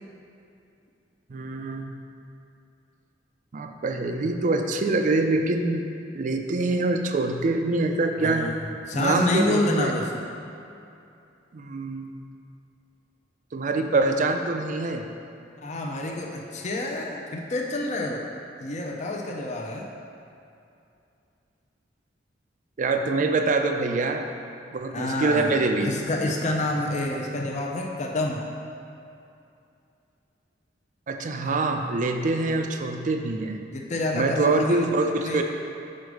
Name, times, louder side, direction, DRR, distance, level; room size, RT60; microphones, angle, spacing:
voice 1, 1.3-1.9 3.5-5.8 6.1-8.5 8.9-9.9 11.5-12.1 13.5-15.1 22.8-24.3 24.7-26.0 31.1-33.6 34.1-35.4, right 3 dB, 45° right, 5 dB, 0.4 m, -25 dB
voice 2, 8.2-8.5 8.9-10.1 15.6-18.2 18.6-19.9 24.9-28.4 33.7-34.8 35.2-35.4, left 2 dB, 40° left, 0 dB, 0.6 m, -28 dB
6.5 x 5.1 x 4.7 m, 2.6 s
head